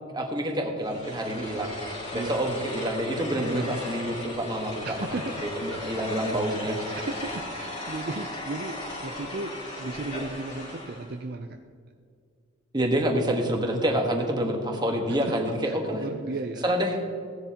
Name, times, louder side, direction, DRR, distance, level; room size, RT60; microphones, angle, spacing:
voice 1, 0.1-7.0 12.7-16.0 16.6-17.0, right 1 dB, 20° right, 2 dB, 1.3 m, -28 dB
sound 1, 0.8-11.1, left 1 dB, 35° left, 2.5 m, -37 dB
voice 2, 4.8-5.4 5.7-6.1 6.9-8.8 9.0-11.6 15.1-15.3 15.6-16.6, right 2 dB, 50° right, 5 dB, 0.5 m, -35 dB
16.0 x 10.5 x 2.9 m, 2.2 s
head